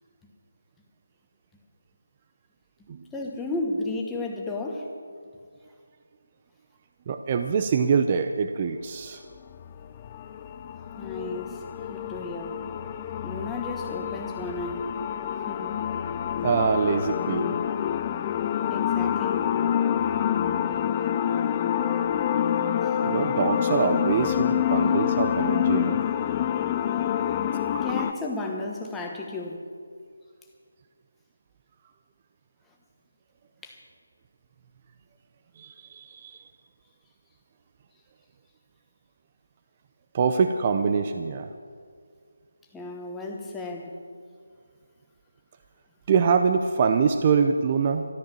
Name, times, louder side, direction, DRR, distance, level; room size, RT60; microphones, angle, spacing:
voice 1, 3.1-4.9 10.9-11.6 11.9-12.6 13.2-14.9 15.5-15.8 18.7-19.5 22.8-23.0 27.0-27.3 27.8-29.6 33.6-33.8 42.7-43.9, left 2 dB, 5° left, 0 dB, 1.2 m, -33 dB
voice 2, 7.1-9.2 16.4-17.6 23.0-26.0 27.7-27.8 35.6-36.4 40.1-41.5 46.1-48.1, right 6 dB, 25° right, 8 dB, 0.6 m, -24 dB
sound 1, 9.5-28.1, left 9 dB, 20° left, 0.5 m, -27 dB
13.5 x 11.5 x 7.4 m, 2.1 s
figure-of-eight pair, 165°, 0 cm